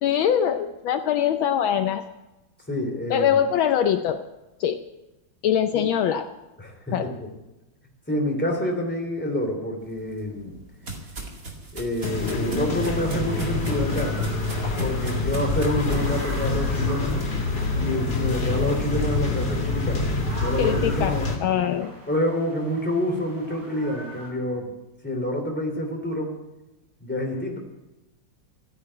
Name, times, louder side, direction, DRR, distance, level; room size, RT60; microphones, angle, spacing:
voice 1, 0.0-2.0 3.1-4.2 4.6-4.8 5.4-6.2 6.9-7.0 20.6-22.0, left 9 dB, 75° left, 7 dB, 1.5 m, -23 dB
voice 2, 2.7-3.3 5.7-5.8 6.6-7.3 8.1-10.6 11.7-14.2 14.8-17.3 17.7-20.0 20.4-21.3 22.1-24.7 25.0-26.3 27.0-27.6, left 1 dB, 5° left, 1 dB, 3.0 m, -27 dB
sound 1, 9.9-16.1, right 2 dB, 40° right, 2.6 m, -37 dB
sound 2, 12.0-21.4, left 3 dB, 50° left, 3.3 m, -26 dB
sound 3, 12.9-24.3, right 1 dB, 90° right, 5.9 m, -41 dB
14.0 x 9.7 x 8.7 m, 1.0 s
omnidirectional pair, 2.3 m